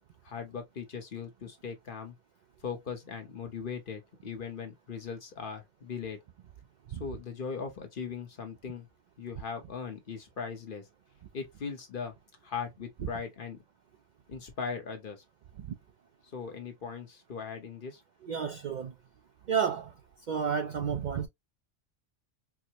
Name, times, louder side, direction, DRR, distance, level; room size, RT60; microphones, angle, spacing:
voice 1, 0.2-2.1 2.6-6.2 6.9-8.9 9.2-10.8 11.3-12.1 12.4-13.6 14.3-15.2 16.3-18.0, left 6 dB, 50° left, 1.0 m, -39 dB
voice 2, 18.2-18.9 19.5-19.9 20.3-21.3, right 7 dB, 60° right, 0.5 m, -31 dB
4.5 x 2.1 x 2.7 m
omnidirectional pair, 1.2 m